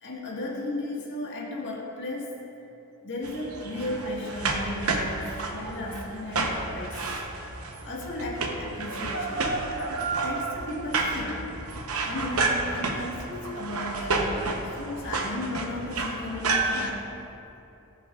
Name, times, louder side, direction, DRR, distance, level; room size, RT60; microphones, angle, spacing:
voice 1, 0.0-2.3 3.0-7.2 7.8-9.5 9.9-11.5 12.0-17.0, left 2 dB, 55° left, -4 dB, 1.7 m, -35 dB
sound 1, 3.2-16.9, right 3 dB, 75° right, 0.9 m, -30 dB
19.0 x 6.7 x 2.5 m, 2.8 s
head